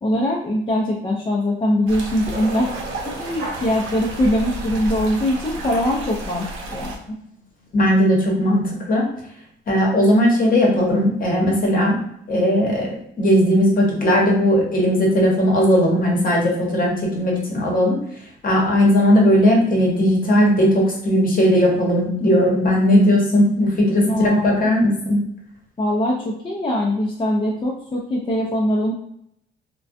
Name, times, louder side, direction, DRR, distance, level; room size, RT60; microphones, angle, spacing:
voice 1, 0.0-2.7 3.1-7.2 24.0-24.7 25.8-28.9, equal, 25° left, -3 dB, 0.4 m, -22 dB
sound 1, 1.9-7.0, right 1 dB, 85° right, 0.6 m, -32 dB
sound 2, 2.3-7.6, right 1 dB, 45° right, 1.0 m, -37 dB
voice 2, 7.7-8.6 8.9-9.0 9.7-12.0 12.3-12.9 13.2-18.0 18.4-25.2, equal, 45° left, -1 dB, 0.9 m, -17 dB
2.4 x 2.2 x 2.5 m, 0.70 s
cardioid pair, 90°, 20 cm